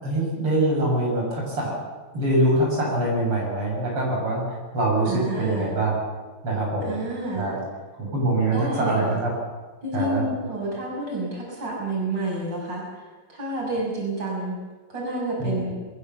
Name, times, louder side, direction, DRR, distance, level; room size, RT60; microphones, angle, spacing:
voice 1, 0.0-1.8 2.1-5.9 6.4-7.0 7.4-7.6 8.0-9.3 9.9-10.2 15.4-15.7, right 1 dB, 85° right, -2 dB, 8.2 m, -24 dB
voice 2, 5.1-5.7 6.8-7.5 8.5-9.1 9.8-13.0 13.3-14.6 14.9-15.7, right 2 dB, 55° right, -2 dB, 7.2 m, -29 dB
22.0 x 21.5 x 7.1 m, 1.3 s
omnidirectional pair, 2.4 m